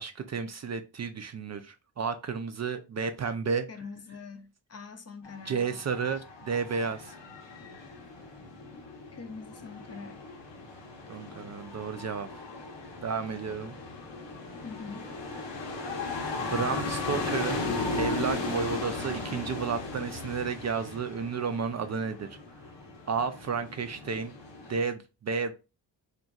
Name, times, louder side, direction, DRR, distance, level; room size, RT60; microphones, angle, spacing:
voice 1, 0.0-3.7 5.5-7.1 11.1-12.3 13.0-13.8 16.4-17.7 18.0-22.3 23.1-24.3 24.7-25.5, right 5 dB, 40° right, 0.4 m, -32 dB
voice 2, 3.7-5.8 9.1-10.2 14.6-15.1, left 5 dB, 35° left, 0.5 m, -44 dB
sound 1, 5.2-24.8, left 3 dB, 70° left, 1.0 m, -37 dB
2.8 x 2.5 x 2.3 m
cardioid pair, 55°, 45 cm